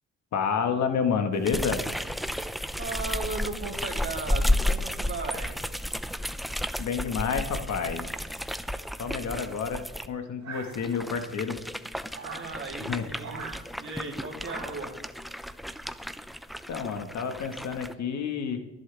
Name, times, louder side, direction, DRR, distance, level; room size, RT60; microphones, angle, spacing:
voice 1, 0.3-1.9 6.8-8.1 9.0-9.8 10.1-11.6 12.9-13.1 16.7-18.6, left 6 dB, 65° left, 6 dB, 1.7 m, -29 dB
sound 1, 1.4-10.1 10.6-17.9, left 1 dB, ahead, 0.7 m, -32 dB
voice 2, 2.8-5.5 12.2-15.0, right 3 dB, 40° right, 1 dB, 3.3 m, -37 dB
sound 2, 10.4-11.2 12.1-12.5 13.2-13.6 14.4-14.9, right 5 dB, 60° right, 3.4 m, -41 dB
25.0 x 11.0 x 3.5 m, 1.1 s
cardioid pair, 90°, 30 cm